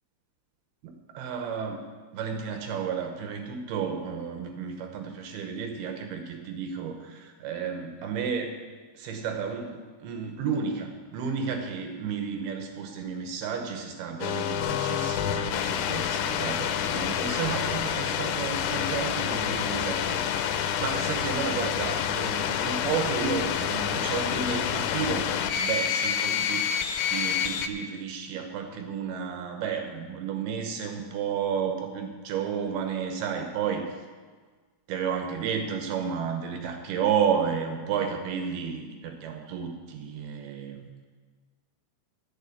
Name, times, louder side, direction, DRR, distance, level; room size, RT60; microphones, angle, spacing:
voice 1, 0.8-1.9 2.1-8.6 8.9-26.7 27.1-34.0 34.9-41.1, right 6 dB, 75° right, 4 dB, 2.4 m, -32 dB
sound 1, 14.2-27.7, left 9 dB, 85° left, 3.0 m, -28 dB
12.5 x 7.0 x 8.4 m, 1.4 s
omnidirectional pair, 5.5 m